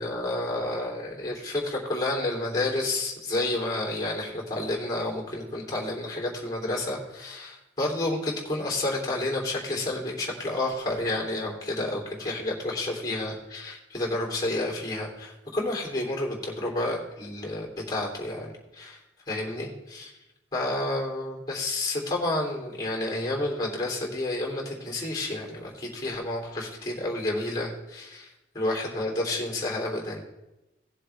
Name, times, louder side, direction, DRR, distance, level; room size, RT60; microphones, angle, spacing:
voice 1, 0.0-19.0 19.3-20.1 20.5-30.2, left 2 dB, 20° left, -1 dB, 3.2 m, -30 dB
18.0 x 7.4 x 3.4 m, 0.96 s
head